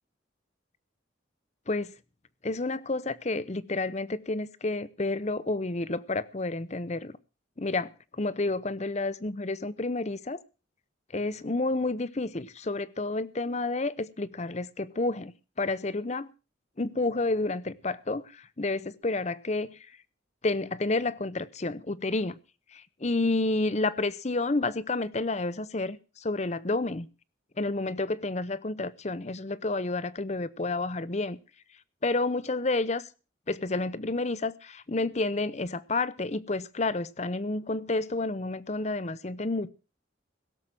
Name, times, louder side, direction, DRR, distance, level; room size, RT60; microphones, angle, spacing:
voice 1, 2.4-7.1 7.6-7.9 8.2-10.4 11.1-15.3 15.6-16.3 16.8-19.8 20.4-22.4 22.7-27.1 27.6-31.4 32.0-33.0 33.5-39.7, left 2 dB, 35° left, 0.7 m, -30 dB
17.0 x 7.4 x 7.7 m
head